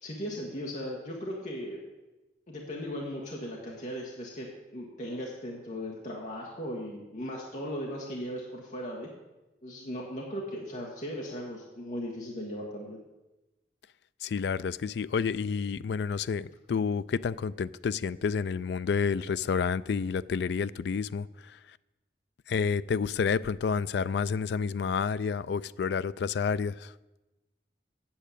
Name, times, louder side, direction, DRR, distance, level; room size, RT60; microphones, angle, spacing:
voice 1, 0.0-1.8 2.5-9.1 9.6-13.0, equal, 40° left, 1.5 m, -37 dB
voice 2, 14.2-21.3 22.5-26.9, left 6 dB, 65° left, 0.3 m, -29 dB
8.8 x 7.2 x 8.3 m
head